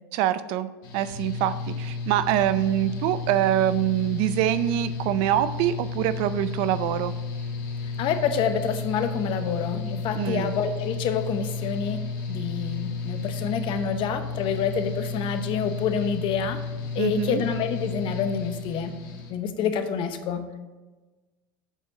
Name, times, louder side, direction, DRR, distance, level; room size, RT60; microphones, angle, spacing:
voice 1, 0.1-0.7 0.9-7.1 10.2-10.5 17.0-17.4, right 12 dB, 60° right, 14 dB, 0.5 m, -24 dB
Mechanical fan, 0.8-19.3, left 4 dB, 75° left, 1.4 m, -33 dB
voice 2, 7.8-12.0 12.3-16.6 16.9-19.0 19.3-20.4, left 7 dB, 50° left, 8 dB, 0.9 m, -27 dB
8.0 x 4.4 x 6.0 m, 1.2 s
hypercardioid pair, 85°, 11 cm